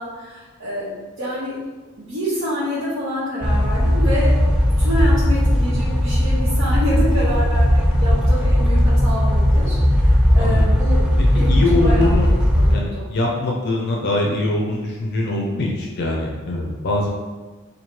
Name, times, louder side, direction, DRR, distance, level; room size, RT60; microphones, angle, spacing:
voice 1, 0.0-1.6 1.9-4.3 4.8-8.8 9.0-11.0 11.3-12.1 12.6-13.0, equal, 55° right, -11 dB, 0.9 m, -27 dB
sound 1, 3.4-12.7, equal, 5° right, 0.4 m, -17 dB
voice 2, 11.2-12.3 12.7-17.1, left 2 dB, 50° left, -1 dB, 0.5 m, -23 dB
2.9 x 2.7 x 4.4 m, 1.3 s
head